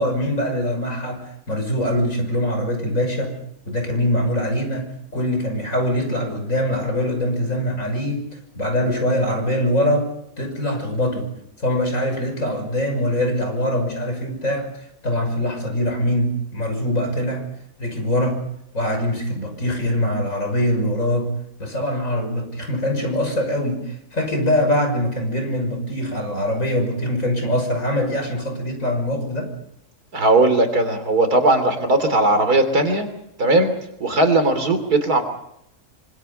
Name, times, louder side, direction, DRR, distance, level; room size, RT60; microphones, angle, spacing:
voice 1, 0.0-3.3 3.7-4.9 5.1-8.2 8.5-10.1 10.4-11.3 11.6-14.7 15.0-17.4 17.8-18.4 18.7-21.3 21.6-29.5, left 1 dB, 55° left, 4 dB, 6.5 m, -23 dB
voice 2, 30.1-33.1 33.4-33.7 34.0-35.2, right 2 dB, 75° right, 8 dB, 3.6 m, -18 dB
26.0 x 25.5 x 5.5 m, 0.79 s
omnidirectional pair, 1.7 m